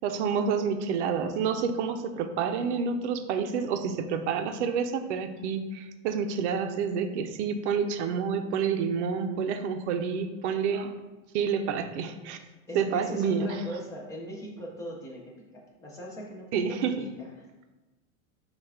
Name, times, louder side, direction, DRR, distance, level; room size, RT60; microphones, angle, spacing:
voice 1, 0.0-10.9 11.3-12.4 12.7-13.6 16.5-17.0, right 6 dB, 60° right, 8 dB, 0.5 m, -28 dB
voice 2, 12.7-17.3, right 1 dB, 10° left, -2 dB, 0.4 m, -40 dB
5.4 x 2.4 x 3.5 m, 1.1 s
supercardioid pair, 145°, 39 cm